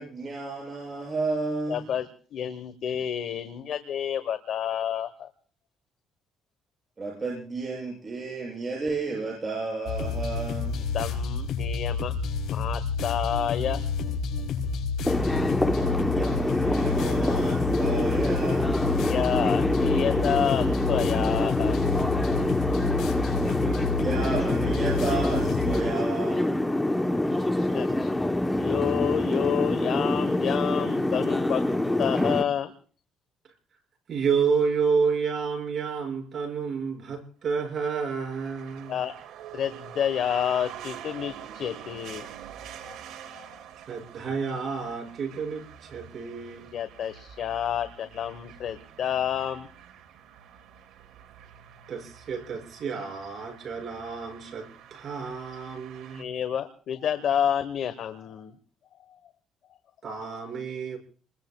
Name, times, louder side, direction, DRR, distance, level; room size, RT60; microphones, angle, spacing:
voice 1, 0.0-1.8 7.0-10.9 15.7-18.9 23.4-26.6 27.2-27.8, right 3 dB, 25° right, -3 dB, 7.3 m, -33 dB
voice 2, 1.7-2.1 2.3-5.3 10.7-12.1 12.5-13.8 19.1-21.8 27.6-28.1 28.6-31.6 32.0-32.7 38.9-39.1 39.5-42.3 42.9-43.0 43.2-43.6 46.7-49.7 56.1-58.5, left 9 dB, 60° left, 11 dB, 1.1 m, -29 dB
sound 1, 9.9-25.8, left 5 dB, 75° left, 4.6 m, -29 dB
sound 2, 15.0-32.4, left 1 dB, 10° left, 0.9 m, -26 dB
voice 3, 34.1-39.0 43.9-46.7 51.9-56.3 60.0-61.0, right 5 dB, 45° right, 1 dB, 6.2 m, -30 dB
sound 3, 37.6-56.2, right 9 dB, 85° right, 2.2 m, -46 dB
29.5 x 21.0 x 2.3 m, 0.42 s
cardioid pair, 125°, 0 cm